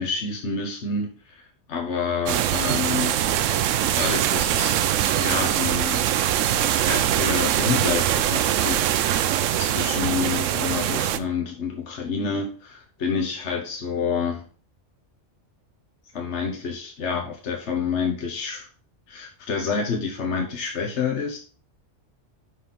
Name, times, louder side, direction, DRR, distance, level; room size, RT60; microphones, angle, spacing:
voice 1, 0.0-3.2 3.9-4.8 5.1-6.0 6.7-14.4 16.1-18.7 19.1-21.4, left 5 dB, 70° left, 1 dB, 1.4 m, -28 dB
sound 1, 2.3-11.2, right 11 dB, 90° right, 0.9 m, -22 dB
5.8 x 4.9 x 5.3 m, 0.38 s
omnidirectional pair, 1.3 m